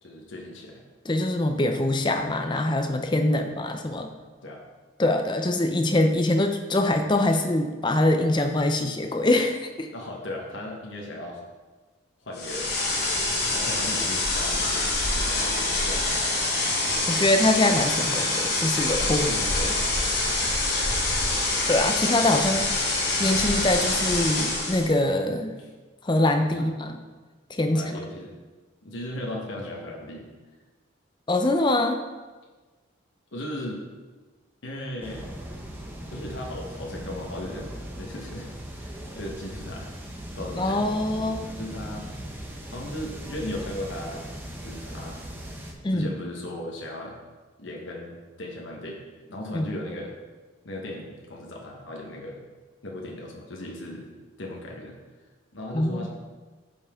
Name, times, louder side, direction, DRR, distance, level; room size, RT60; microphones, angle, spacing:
voice 1, 0.0-0.8 4.4-4.6 7.3-7.4 9.9-11.4 12.2-12.9 13.4-16.3 19.0-20.3 25.6-25.7 26.4-26.7 27.7-28.4 28.8-30.3 33.3-33.8 34.6-35.3 36.1-39.9 40.3-40.8 41.1-42.1 42.7-44.3 44.6-45.2 45.9-47.2 47.6-50.1 50.6-52.4 52.8-54.1 54.4-55.0 55.5-56.1, left 1 dB, 70° left, -1 dB, 1.2 m, -37 dB
voice 2, 1.1-4.1 5.0-9.9 17.1-19.7 21.7-25.5 26.0-27.0 27.5-27.9 31.3-32.0 40.6-41.5 45.8-46.1 49.5-49.7 55.7-56.1, left 1 dB, 20° left, 6 dB, 0.5 m, -24 dB
sound 1, 12.3-24.9, left 2 dB, 50° left, 1.5 m, -25 dB
sound 2, 35.0-45.7, equal, 10° right, 0.8 m, -39 dB
9.4 x 5.7 x 3.6 m, 1.3 s
head